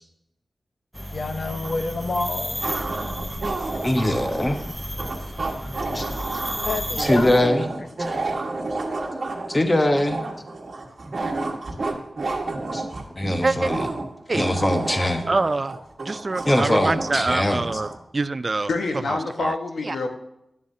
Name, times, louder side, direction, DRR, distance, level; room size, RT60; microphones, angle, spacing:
sound 1, 0.9-7.4, equal, 5° left, 0.7 m, -33 dB
voice 1, 1.1-2.6 6.7-7.7 8.1-8.2, left 3 dB, 60° left, 7 dB, 0.9 m, -28 dB
sound 2, 1.6-1.7 2.6-18.0, right 2 dB, 55° right, 1.3 m, -30 dB
voice 2, 3.8-4.6 5.9-6.1 7.0-7.7 9.5-10.2 12.7-12.8 13.1-13.9 14.3-15.2 16.5-17.8, left 1 dB, 25° left, 6 dB, 1.0 m, -22 dB
voice 3, 15.3-15.8 16.1-17.9 18.1-18.7 19.1-19.5 19.8-20.0, right 3 dB, 40° right, 15 dB, 0.3 m, -25 dB
voice 4, 18.7-20.1, left 3 dB, 85° left, 4 dB, 1.2 m, -26 dB
11.0 x 7.2 x 2.7 m, 0.80 s
wide cardioid pair, 100°, 0 cm